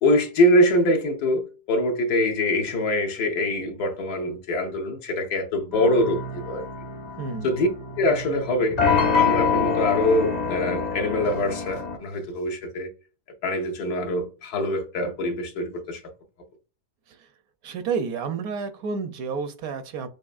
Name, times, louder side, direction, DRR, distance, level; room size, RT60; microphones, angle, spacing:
voice 1, 0.0-6.6 7.4-7.7 8.0-8.8 9.1-12.9 13.4-16.0, left 1 dB, 75° left, 1.4 m, -24 dB
sound 1, 5.7-12.0, left 5 dB, 50° left, 0.5 m, -26 dB
voice 2, 7.2-7.5 17.6-20.1, right 5 dB, 70° right, 1.0 m, -30 dB
6.2 x 2.6 x 2.4 m
omnidirectional pair, 1.7 m